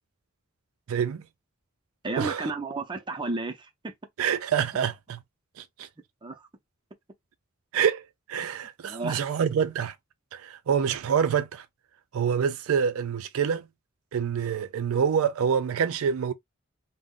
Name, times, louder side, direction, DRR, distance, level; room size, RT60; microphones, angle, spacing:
voice 1, 0.9-1.2 2.2-2.5 4.2-5.2 5.6-5.9 7.7-9.9 10.3-11.6 12.1-13.7 14.1-16.3, right 7 dB, 75° right, 0.4 m, -26 dB
voice 2, 2.0-3.9 6.2-6.4 8.9-9.2, right 3 dB, 20° right, 0.5 m, -32 dB
2.5 x 2.0 x 3.6 m
head